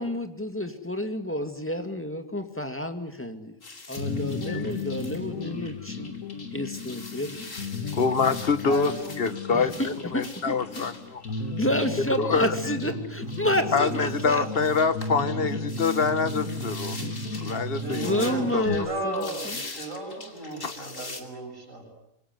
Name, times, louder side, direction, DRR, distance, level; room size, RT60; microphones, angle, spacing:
voice 1, 0.0-3.5 3.9-6.1 6.5-7.5 9.5-10.9 11.6-14.5 15.8-15.9 17.0-17.5 18.0-19.3, equal, 10° left, 6 dB, 2.2 m, -30 dB
sound 1, 3.6-21.2, left 3 dB, 65° left, 3.1 m, -43 dB
sound 2, 4.0-18.8, left 3 dB, 85° left, 2.4 m, -34 dB
voice 2, 7.9-8.9 9.2-11.2 12.2-12.5 13.7-17.0 17.4-18.6 20.6-20.9, left 5 dB, 45° left, 12 dB, 1.4 m, -26 dB
voice 3, 8.7-9.3 13.6-13.7 17.7-21.8, right 1 dB, 65° right, 2 dB, 7.2 m, -35 dB
27.0 x 22.5 x 9.5 m, 0.80 s
omnidirectional pair, 1.4 m